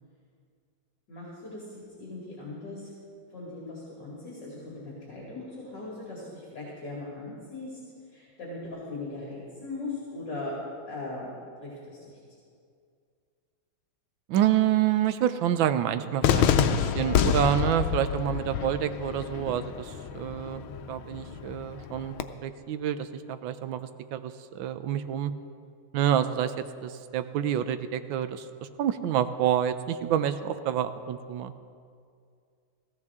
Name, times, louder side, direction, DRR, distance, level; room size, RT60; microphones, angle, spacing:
voice 1, 1.1-2.9 3.3-7.8 8.1-10.6 10.9-11.3 11.6-12.4, left 2 dB, 55° left, -6 dB, 3.0 m, -39 dB
voice 2, 14.3-22.2 22.4-25.3 25.9-28.4 28.8-31.5, right 10 dB, 75° right, 11 dB, 1.3 m, -28 dB
Cheering / Fireworks, 16.2-22.2, left 9 dB, 85° left, 1.5 m, -28 dB
17.5 x 14.5 x 3.6 m, 2.3 s
omnidirectional pair, 2.3 m